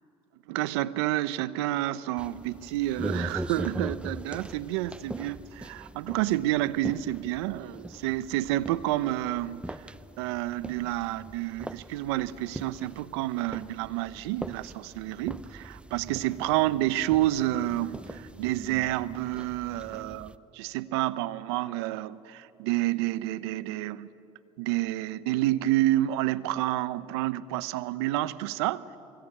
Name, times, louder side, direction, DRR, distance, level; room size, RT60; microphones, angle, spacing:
voice 1, 0.5-9.8 10.2-24.1 24.6-28.8, right 15 dB, 90° right, 16 dB, 0.7 m, -29 dB
sound 1, 2.2-20.4, right 1 dB, 10° right, 0.7 m, -41 dB
24.0 x 20.0 x 8.6 m, 2.9 s
supercardioid pair, 80°, 13 cm